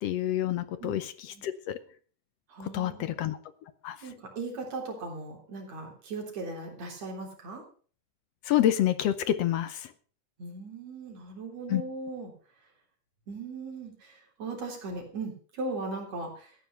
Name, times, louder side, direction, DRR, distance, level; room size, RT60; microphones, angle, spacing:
voice 1, 0.0-1.8 2.7-3.4 3.8-4.0 8.5-9.9 11.7-11.8, left 12 dB, 75° left, 12 dB, 1.6 m, -28 dB
voice 2, 2.5-3.1 4.0-7.6 10.4-12.3 13.3-16.5, right 3 dB, 55° right, 1 dB, 4.6 m, -38 dB
14.5 x 9.3 x 5.7 m, 0.42 s
omnidirectional pair, 3.6 m